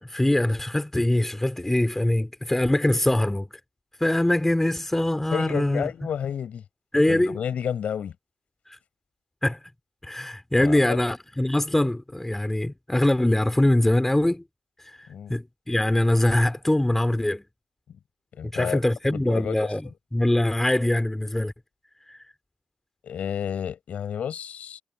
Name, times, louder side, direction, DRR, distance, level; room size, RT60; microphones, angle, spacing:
voice 1, 0.0-3.5 4.0-5.9 6.9-7.4 8.7-8.8 9.4-9.6 10.0-14.4 14.8-17.4 18.4-19.8 20.1-21.5 22.1-22.2, left 1 dB, 10° left, 2.8 m, -23 dB
voice 2, 5.3-6.6 7.1-8.2 10.6-11.0 15.1-15.3 18.4-18.8 19.1-19.9 23.0-24.8, left 8 dB, 60° left, 7.0 m, -31 dB
hypercardioid pair, 45°, 3 cm